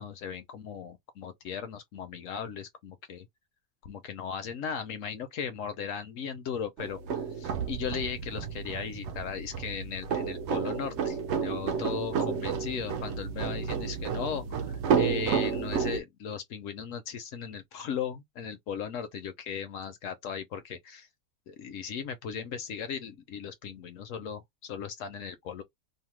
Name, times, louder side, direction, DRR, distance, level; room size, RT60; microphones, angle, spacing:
voice 1, 0.0-3.3 3.8-21.1 21.5-25.6, left 7 dB, 65° left, 0.9 m, -37 dB
sound 1, 6.8-16.0, right 7 dB, 70° right, 0.6 m, -31 dB
2.8 x 2.1 x 3.1 m
omnidirectional pair, 1.6 m